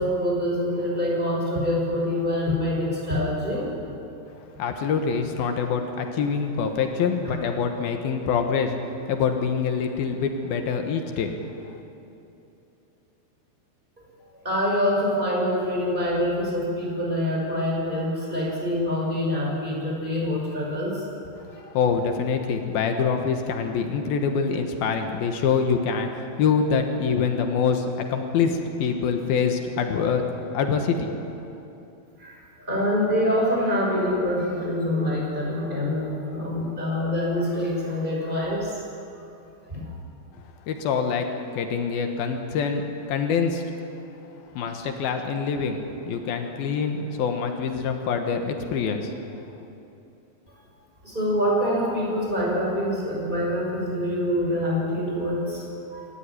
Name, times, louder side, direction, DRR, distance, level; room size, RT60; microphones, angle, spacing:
voice 1, 0.0-3.9 7.3-7.5 14.4-21.6 32.2-38.7 39.1-39.2 39.7-39.9 51.0-56.1, left 1 dB, 10° right, -3 dB, 6.0 m, -25 dB
voice 2, 4.6-8.7 9.1-11.3 11.6-11.7 21.7-30.3 30.5-31.1 40.7-41.3 41.5-43.6 44.5-49.1, left 6 dB, 85° left, 5 dB, 3.3 m, -25 dB
26.5 x 13.0 x 9.9 m, 2.8 s
omnidirectional pair, 4.2 m